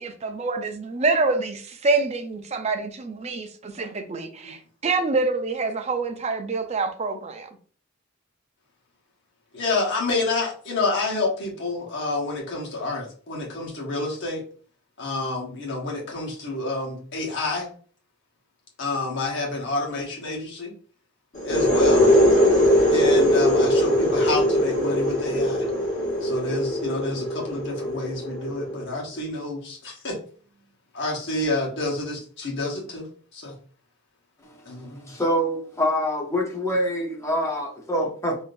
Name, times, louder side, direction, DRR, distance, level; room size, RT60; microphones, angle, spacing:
voice 1, 0.0-7.5, right 3 dB, 30° right, 0.4 m, -26 dB
voice 2, 9.5-14.4 15.0-17.7 18.8-20.7 21.4-22.1 22.9-25.6 26.2-30.2 30.9-33.1 33.3-33.5 34.7-35.0, left 2 dB, 55° left, 1.2 m, -28 dB
sound 1, 21.3-28.9, equal, 35° left, 1.5 m, -21 dB
voice 3, 34.4-38.4, equal, 15° left, 0.8 m, -26 dB
3.6 x 2.7 x 2.5 m
head